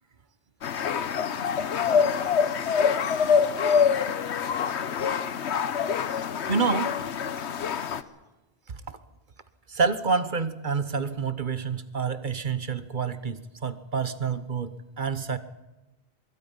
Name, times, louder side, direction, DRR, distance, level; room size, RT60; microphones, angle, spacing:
sound 1, 0.6-8.0, left 6 dB, 80° left, 1.2 m, -25 dB
voice 1, 6.5-7.0 9.7-15.4, right 5 dB, 50° right, 12 dB, 1.2 m, -28 dB
24.5 x 22.5 x 5.4 m, 1.1 s
omnidirectional pair, 1.1 m